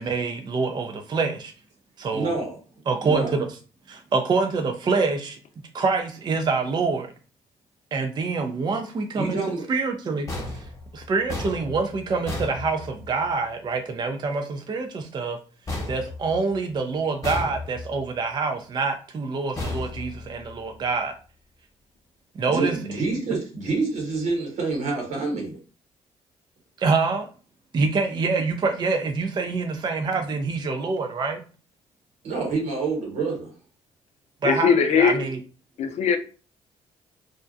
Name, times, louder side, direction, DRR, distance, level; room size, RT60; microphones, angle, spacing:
voice 1, 0.0-1.5 2.0-2.3 2.9-3.5 3.9-5.4 5.7-7.1 7.9-9.4 9.7-10.7 10.9-15.4 15.9-21.1 22.4-22.8 26.8-27.3 27.7-31.4 34.4-35.4, right 4 dB, 35° right, 0.4 m, -26 dB
voice 2, 2.1-2.5 3.0-3.3 9.1-9.6 22.5-25.6 32.2-33.5, right 3 dB, 75° right, 1.2 m, -27 dB
sound 1, 10.3-13.3 15.7-16.8 17.2-18.1 19.6-20.7, left 2 dB, 25° left, 1.0 m, -34 dB
voice 3, 34.4-35.3 35.8-36.2, left 6 dB, 60° left, 0.4 m, -20 dB
2.4 x 2.1 x 2.5 m
supercardioid pair, 65°, 13 cm